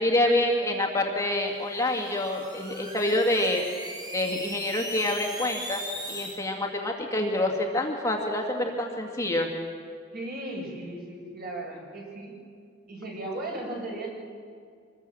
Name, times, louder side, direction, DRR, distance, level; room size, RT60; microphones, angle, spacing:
voice 1, 0.0-3.6 4.1-5.8 6.1-9.5, left 1 dB, 15° left, 0 dB, 2.3 m, -27 dB
sound 1, 1.5-6.4, equal, 20° right, 5.0 m, -39 dB
voice 2, 10.1-12.3 12.9-14.1, right 1 dB, 50° right, -1 dB, 7.2 m, -36 dB
25.5 x 21.0 x 7.9 m, 2.1 s
head